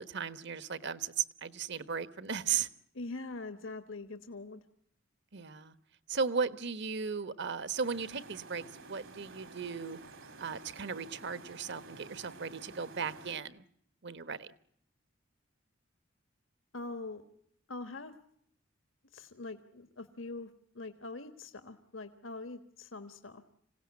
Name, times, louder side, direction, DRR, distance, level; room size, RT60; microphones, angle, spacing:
voice 1, 0.0-2.7 5.3-5.7 6.1-10.0 10.4-13.6 14.0-14.5, right 6 dB, 60° right, 14 dB, 1.2 m, -36 dB
voice 2, 2.9-4.6 16.7-17.2 17.7-18.1 19.1-20.5 20.7-23.4, left 3 dB, 80° left, 9 dB, 1.4 m, -43 dB
sound 1, 7.8-13.3, right 3 dB, 75° right, 3.1 m, -51 dB
26.5 x 17.5 x 9.7 m, 0.70 s
head